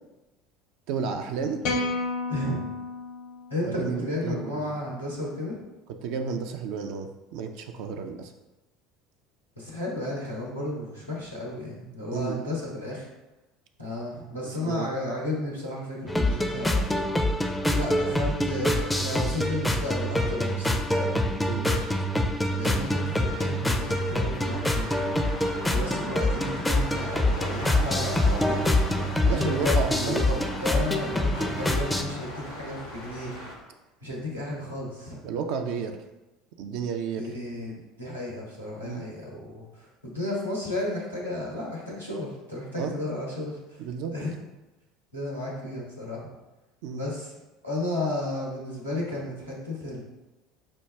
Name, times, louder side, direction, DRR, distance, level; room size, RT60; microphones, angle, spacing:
voice 1, 0.9-1.6 3.6-4.7 6.0-8.3 12.1-12.4 14.4-14.9 21.4-21.8 25.9-26.1 29.2-30.3 35.2-36.0 36.6-37.3 38.8-39.1 42.7-42.9 43.8-44.1 46.8-47.1, right 6 dB, 55° right, 5 dB, 0.3 m, -32 dB
sound 1, 1.6-4.0, left 2 dB, 55° left, 0.6 m, -31 dB
voice 2, 2.3-2.7 3.5-5.6 9.6-13.1 13.8-16.9 17.7-21.2 22.5-25.0 25.7-28.7 29.3-33.3 34.0-35.2 37.2-37.7 38.0-43.6 44.1-44.4 45.1-46.3 46.9-47.3 47.6-50.0, left 1 dB, 90° right, -5 dB, 1.0 m, -33 dB
sound 2, 16.1-32.0, left 1 dB, 10° left, 0.4 m, -25 dB
sound 3, 22.6-33.5, left 1 dB, 90° left, 1.4 m, -39 dB
5.9 x 2.2 x 3.3 m, 1.0 s
figure-of-eight pair, 65°, 0 cm